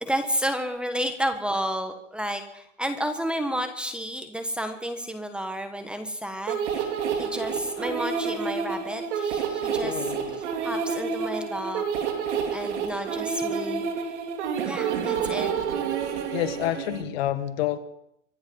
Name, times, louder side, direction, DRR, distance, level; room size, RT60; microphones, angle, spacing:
voice 1, 0.0-10.0 10.6-11.8 12.5-13.8 14.6-15.5 16.1-16.2, equal, 5° right, 7 dB, 1.4 m, -31 dB
sound 1, 6.5-17.0, right 6 dB, 60° right, 3.6 m, -29 dB
voice 2, 9.8-10.4 16.3-17.8, left 12 dB, 50° left, 11 dB, 1.6 m, -29 dB
25.0 x 10.5 x 5.5 m, 0.78 s
hypercardioid pair, 125°, 39 cm